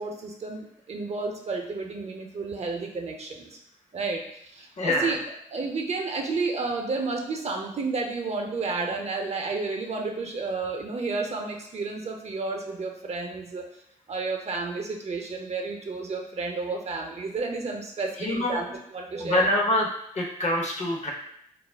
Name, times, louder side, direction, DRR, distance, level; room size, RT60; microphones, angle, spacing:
voice 1, 0.0-3.5 3.9-5.2 5.5-13.6 14.1-19.6, right 3 dB, 50° right, 2 dB, 0.6 m, -31 dB
voice 2, 4.8-5.1 18.2-18.6 19.2-19.9 20.2-21.1, left 1 dB, 50° left, 0 dB, 0.8 m, -25 dB
2.3 x 2.0 x 3.3 m, 0.72 s
supercardioid pair, 40°, 14 cm